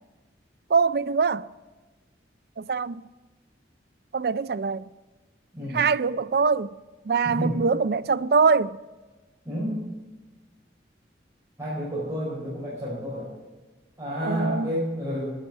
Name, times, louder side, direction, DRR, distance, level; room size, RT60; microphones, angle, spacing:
voice 1, 0.7-1.5 2.6-3.0 4.1-4.8 5.7-6.7 7.1-8.8 14.2-14.7, right 5 dB, 55° right, 0.4 m, -23 dB
voice 2, 9.4-9.8 11.6-13.3 14.0-15.3, equal, 15° right, 5.0 m, -30 dB
12.5 x 10.0 x 9.4 m
head